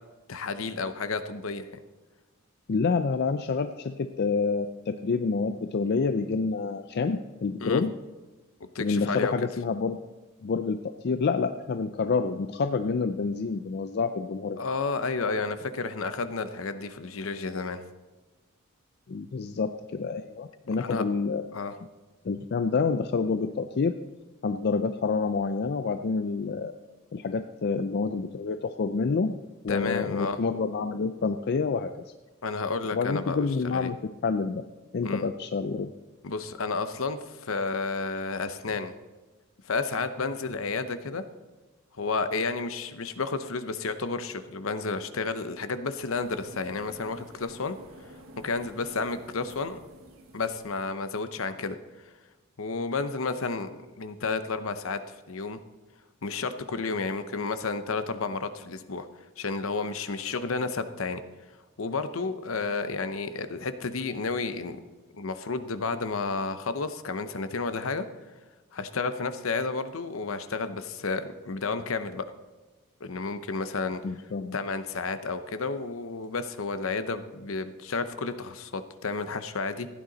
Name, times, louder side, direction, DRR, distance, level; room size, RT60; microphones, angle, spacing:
voice 1, 0.3-1.7 7.6-7.8 8.6-9.3 14.6-17.8 20.8-21.0 21.5-21.7 29.7-30.4 32.4-33.5 33.7-33.9 35.0-35.2 36.2-38.9 39.6-41.2 42.0-47.8 48.4-49.8 50.3-51.8 52.6-55.0 55.3-55.6 56.2-59.1 59.4-61.2 61.8-64.8 65.1-68.0 68.7-72.3 73.0-74.0 74.5-79.9, left 4 dB, 65° left, 11 dB, 0.8 m, -31 dB
voice 2, 2.7-7.9 8.8-10.0 10.4-10.8 11.0-14.6 19.1-21.4 22.2-23.9 24.4-26.7 27.1-29.4 29.6-31.9 32.9-34.0 34.2-34.6 34.9-35.9 74.0-74.6, left 4 dB, 50° left, 8 dB, 0.4 m, -28 dB
sound 1, 46.2-50.9, right 1 dB, 75° right, 1.5 m, -49 dB
15.0 x 9.4 x 4.0 m, 1.2 s
head